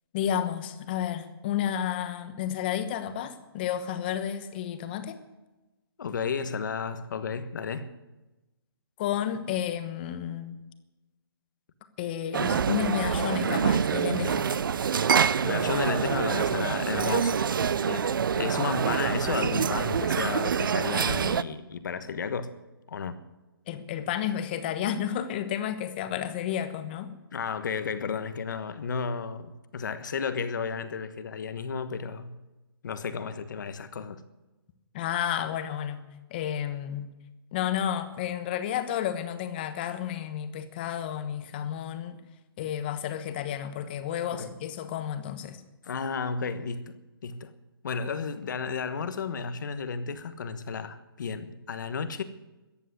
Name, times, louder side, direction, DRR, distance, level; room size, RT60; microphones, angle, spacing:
voice 1, 0.1-5.2 9.0-10.6 12.0-14.6 23.7-27.1 34.9-36.0 36.3-37.1 37.5-42.2 42.6-45.6, left 10 dB, 25° left, 1.1 m, -31 dB
voice 2, 6.0-7.9 15.4-17.5 17.9-22.5 22.9-23.2 27.3-32.3 32.8-34.2 44.3-44.5 45.8-47.5 47.8-52.2, left 5 dB, 50° left, 1.3 m, -33 dB
sound 1, 12.3-21.4, right 7 dB, 60° right, 0.6 m, -26 dB
14.0 x 9.2 x 9.5 m
hypercardioid pair, 165°, 13 cm